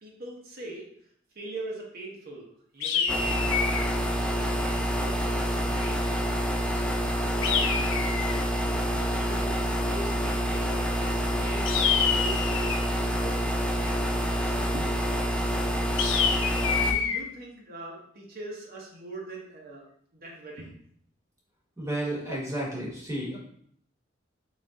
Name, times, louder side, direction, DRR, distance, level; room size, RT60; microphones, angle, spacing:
voice 1, 0.0-0.9 1.3-4.0 4.3-6.0 7.2-7.8 8.2-9.6 9.9-11.7 12.0-13.5 13.8-15.5 16.4-19.8 20.1-20.7, right 2 dB, 50° right, -2 dB, 0.8 m, -42 dB
sound 1, 2.8-4.0 7.4-8.4 11.6-12.9 16.0-17.2, left 6 dB, 75° left, 0.5 m, -27 dB
sound 2, 3.1-16.9, equal, 5° left, 0.4 m, -27 dB
voice 2, 21.8-23.4, right 1 dB, 15° right, -3 dB, 1.1 m, -32 dB
3.9 x 3.2 x 3.6 m, 0.64 s
head